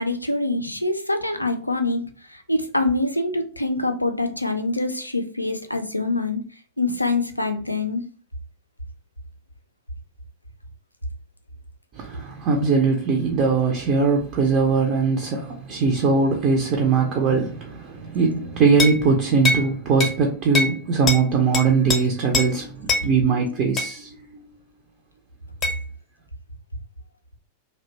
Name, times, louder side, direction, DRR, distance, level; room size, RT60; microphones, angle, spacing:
voice 1, 0.0-6.4 6.8-8.0, left 2 dB, 85° left, 0.3 m, -25 dB
voice 2, 11.9-24.4, right 4 dB, 40° right, 0.4 m, -21 dB
sound 1, 18.8-19.0 19.4-19.7 20.0-20.2 20.5-20.8 21.1-21.2 21.5-22.0 22.3-22.5 22.9-23.1 23.8-23.9 25.6-25.8, left 3 dB, 30° left, 0.6 m, -22 dB
2.6 x 2.1 x 2.6 m
figure-of-eight pair, 90°, 0 cm